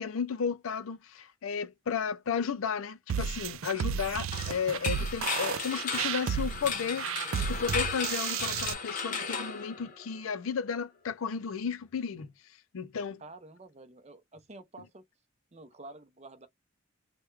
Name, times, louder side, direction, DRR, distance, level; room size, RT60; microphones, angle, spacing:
voice 1, 0.0-12.3 12.7-13.2, left 6 dB, 80° left, 0.5 m, -33 dB
sound 1, 3.1-8.7, right 7 dB, 80° right, 0.4 m, -33 dB
sound 2, 4.3-10.3, left 5 dB, 40° left, 0.8 m, -36 dB
voice 2, 13.2-15.0 15.5-16.5, right 2 dB, 30° right, 0.6 m, -49 dB
3.4 x 2.2 x 3.0 m
head